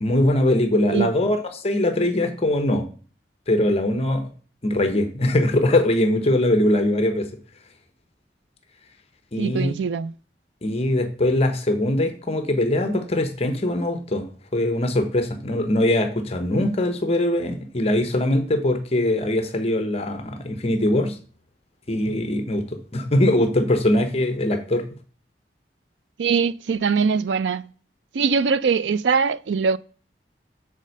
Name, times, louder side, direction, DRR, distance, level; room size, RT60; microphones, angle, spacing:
voice 1, 0.0-2.9 3.5-4.3 4.6-7.3 9.3-9.7 10.6-21.2 21.9-22.6 22.9-24.8, left 1 dB, 35° left, 0.9 m, -22 dB
voice 2, 9.4-10.1 26.2-27.6 28.1-29.8, right 5 dB, 90° right, 0.4 m, -22 dB
7.4 x 4.2 x 6.6 m
head